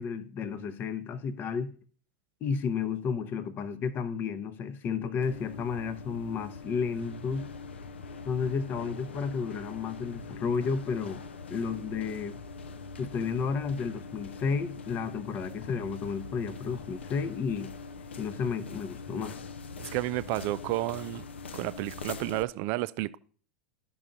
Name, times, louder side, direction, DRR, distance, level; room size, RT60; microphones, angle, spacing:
voice 1, 0.0-1.7 2.4-7.5 8.2-11.2 11.5-12.4 13.0-17.7 18.2-19.4, left 5 dB, 30° left, 0.7 m, -32 dB
sound 1, 5.2-22.4, left 4 dB, 70° left, 0.4 m, -43 dB
voice 2, 19.8-21.2 21.5-23.2, right 17 dB, 40° right, 0.4 m, -31 dB
13.0 x 5.5 x 2.5 m
figure-of-eight pair, 85°, 6 cm